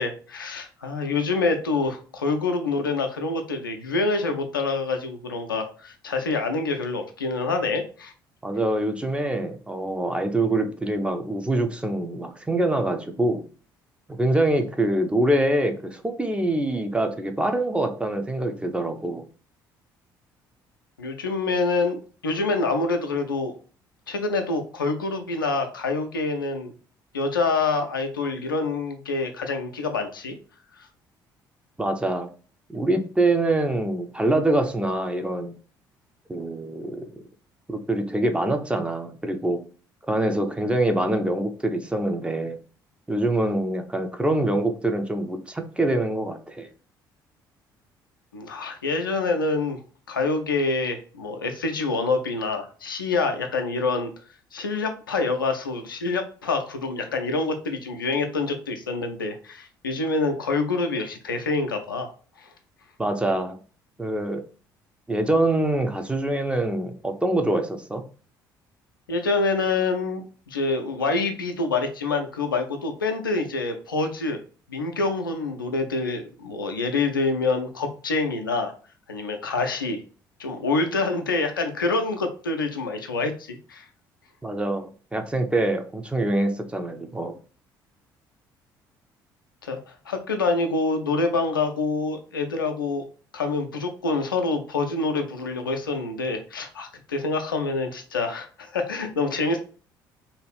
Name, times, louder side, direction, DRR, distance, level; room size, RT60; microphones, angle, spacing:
voice 1, 0.0-8.1 21.0-23.5 24.1-26.7 27.1-30.4 30.8-30.9 48.3-49.8 50.1-54.1 54.5-62.1 62.4-62.5 69.1-74.4 74.7-78.7 79.1-80.0 80.4-83.9 89.6-93.0 93.3-99.6, left 3 dB, 85° left, 5 dB, 0.4 m, -26 dB
voice 2, 8.4-13.5 14.2-19.2 31.8-32.3 32.7-35.6 36.3-37.1 37.7-39.6 40.1-42.6 43.1-46.7 63.0-63.6 64.0-64.5 65.1-68.1 84.4-87.4, right 1 dB, 10° right, 6 dB, 0.5 m, -25 dB
2.6 x 2.3 x 3.2 m, 0.39 s
figure-of-eight pair, 50°, 11 cm